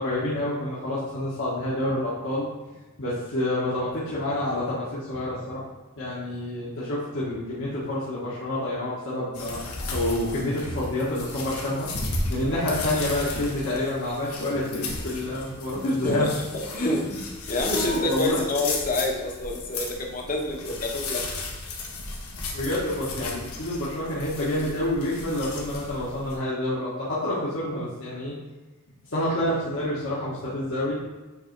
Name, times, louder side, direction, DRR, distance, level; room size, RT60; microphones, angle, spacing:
voice 1, 0.0-2.4 3.0-5.6 6.0-9.6 9.9-11.9 12.3-16.3 16.6-17.0 17.7-18.4 22.5-28.3 29.1-31.0, left 1 dB, 60° left, -9 dB, 1.4 m, -28 dB
sound 1, 9.3-26.3, left 3 dB, 80° left, 1.3 m, -35 dB
voice 2, 16.0-17.2 17.5-21.4, left 2 dB, 40° left, 0 dB, 1.1 m, -28 dB
7.8 x 3.4 x 4.6 m, 1.2 s
head